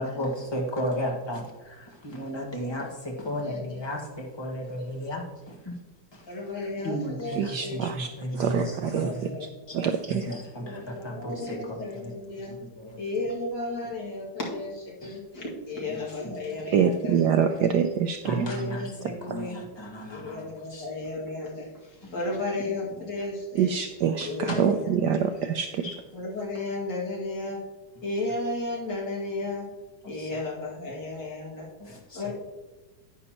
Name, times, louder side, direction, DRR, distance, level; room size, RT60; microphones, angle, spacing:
voice 1, 0.0-5.8 6.1-6.3 6.5-9.4 9.7-9.8 10.1-12.1 12.6-13.0 15.0-15.2 15.9-16.0 16.2-16.6 18.2-20.9 22.0-22.3 24.2-24.7 25.8-26.0 30.0-30.4 31.8-32.3, equal, 15° left, -1 dB, 1.5 m, -35 dB
voice 2, 3.4-3.8 4.8-4.9 6.3-7.8 8.4-9.9 10.5-12.5 13.0-17.6 18.2-19.6 20.1-23.7 24.2-25.0 26.1-27.6 28.0-29.7 30.1-31.7 32.1-32.3, left 2 dB, 60° left, -4 dB, 2.9 m, -34 dB
voice 3, 7.4-8.1 8.3-9.1 9.7-10.3 16.7-18.4 23.6-25.8, right 7 dB, 75° right, 7 dB, 1.0 m, -25 dB
10.5 x 9.4 x 3.0 m, 1.2 s
omnidirectional pair, 2.2 m